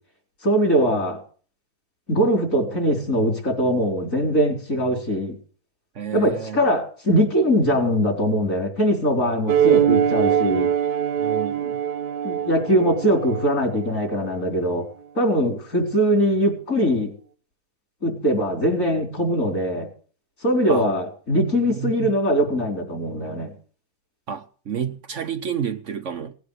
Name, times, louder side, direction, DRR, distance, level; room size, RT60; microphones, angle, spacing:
voice 1, 0.4-1.2 2.1-5.4 6.1-10.7 12.2-14.9 15.1-17.1 18.0-19.9 20.4-23.5, equal, 60° left, 4.6 m, -21 dB
voice 2, 5.9-6.6 11.2-11.8 20.7-20.8 21.5-22.1 24.3-26.3, right 8 dB, 55° right, 1.1 m, -30 dB
sound 1, 9.5-14.4, right 9 dB, 85° right, 1.4 m, -22 dB
18.0 x 9.4 x 6.7 m
omnidirectional pair, 1.6 m